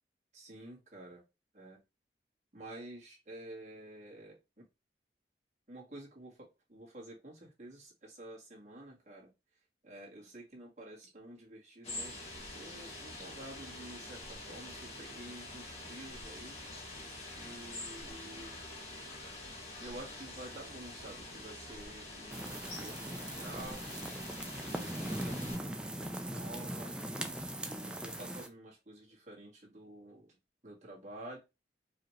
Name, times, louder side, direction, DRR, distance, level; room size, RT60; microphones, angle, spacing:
voice 1, 0.3-1.2 1.5-1.8 2.5-4.7 5.7-9.3 9.8-16.6 17.3-18.6 19.8-23.8 24.5-26.9 27.6-30.4 30.6-31.4, right 1 dB, 40° right, -4 dB, 1.8 m, -50 dB
sound 1, 11.8-25.6, left 2 dB, 35° left, 1.4 m, -46 dB
sound 2, 22.3-28.5, right 1 dB, 5° right, 0.4 m, -40 dB
4.8 x 3.1 x 3.1 m, 0.26 s
head